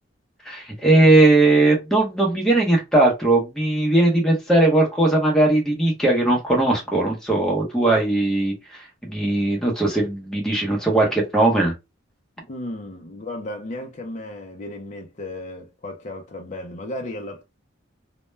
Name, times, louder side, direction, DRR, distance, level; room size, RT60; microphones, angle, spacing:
voice 1, 0.5-11.7, right 2 dB, 5° left, 0.7 m, -19 dB
voice 2, 12.5-17.4, left 1 dB, 40° left, 0.4 m, -34 dB
2.1 x 2.1 x 3.1 m
head